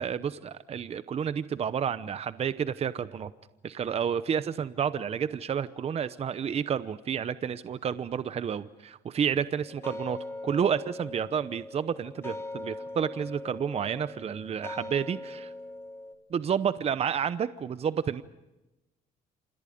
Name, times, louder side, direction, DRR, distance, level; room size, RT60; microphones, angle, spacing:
voice 1, 0.0-3.3 3.6-10.2 10.4-15.5 16.3-18.2, right 7 dB, 35° right, 14 dB, 0.8 m, -30 dB
sound 1, 9.6-16.1, left 2 dB, 15° left, 3.3 m, -41 dB
28.5 x 27.0 x 5.2 m, 1.0 s
cardioid pair, 110°, 17 cm